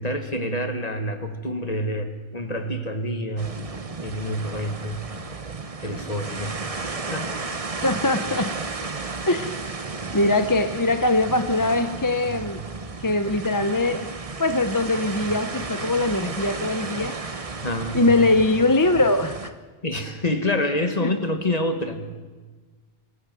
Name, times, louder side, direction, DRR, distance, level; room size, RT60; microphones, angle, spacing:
voice 1, 0.0-3.6 4.0-5.1 5.8-7.3 17.6-18.2 19.8-22.1, left 1 dB, 40° left, 7 dB, 2.0 m, -27 dB
sound 1, 3.4-19.5, right 3 dB, 35° right, 1.2 m, -33 dB
voice 2, 7.8-8.5 9.3-9.6 10.1-12.6 13.0-14.1 14.4-17.4 17.9-19.5 21.0-21.1, left 2 dB, 20° left, 9 dB, 0.9 m, -22 dB
26.0 x 15.5 x 7.8 m, 1.3 s
omnidirectional pair, 1.0 m